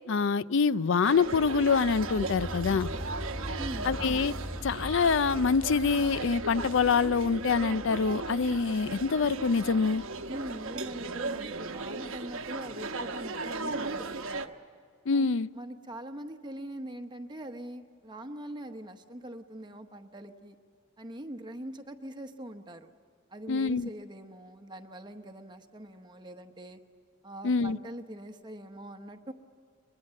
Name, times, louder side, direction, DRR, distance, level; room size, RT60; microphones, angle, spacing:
voice 1, 0.1-2.9 3.8-4.3 4.6-10.0 15.1-15.5 23.5-23.9 27.4-27.8, left 5 dB, 65° left, 17 dB, 0.5 m, -25 dB
sound 1, 1.0-14.5, right 3 dB, 80° right, 1.0 m, -37 dB
sound 2, 1.3-11.2, equal, 35° left, 5.1 m, -42 dB
voice 2, 3.6-3.9 10.3-14.5 15.1-15.3 15.5-20.5 21.0-22.9 23.3-26.8 27.2-29.3, right 1 dB, 20° right, 6 dB, 0.9 m, -42 dB
23.0 x 22.0 x 7.6 m, 2.3 s
head